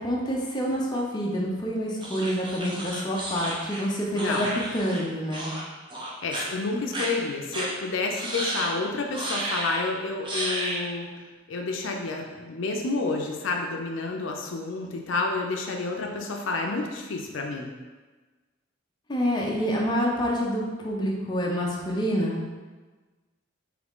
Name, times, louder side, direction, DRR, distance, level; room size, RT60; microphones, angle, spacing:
voice 1, 0.0-4.5 4.7-5.5 19.1-22.4, equal, 20° left, -3 dB, 0.5 m, -27 dB
sound 1, 2.0-5.0 5.3-5.6 5.9-6.4 6.9-7.1 7.5-7.7 8.1-8.7 9.1-9.8 10.2-10.8, right 1 dB, 25° right, 0.7 m, -32 dB
voice 2, 4.1-4.5 6.2-11.1 11.5-17.7, left 3 dB, 65° left, 1 dB, 0.5 m, -29 dB
3.7 x 3.1 x 3.5 m, 1.3 s
head